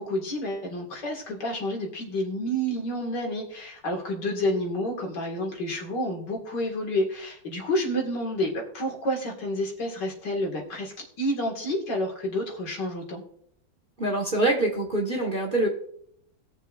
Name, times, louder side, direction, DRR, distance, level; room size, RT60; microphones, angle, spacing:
voice 1, 0.0-13.2, equal, 60° left, 0 dB, 2.5 m, -29 dB
voice 2, 14.0-15.7, right 2 dB, 30° right, 1 dB, 1.4 m, -25 dB
20.5 x 7.1 x 2.5 m, 0.67 s
omnidirectional pair, 2.1 m